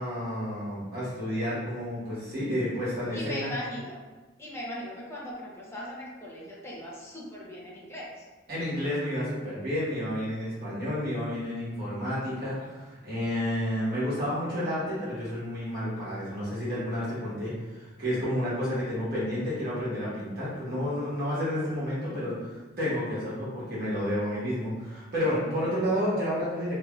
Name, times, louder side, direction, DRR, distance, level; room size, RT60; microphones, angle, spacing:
voice 1, 0.0-3.5 8.5-26.8, equal, 55° right, -10 dB, 1.3 m, -30 dB
voice 2, 3.1-4.0 4.4-8.2, left 1 dB, 15° left, -5 dB, 0.7 m, -39 dB
3.4 x 3.0 x 2.3 m, 1.2 s
head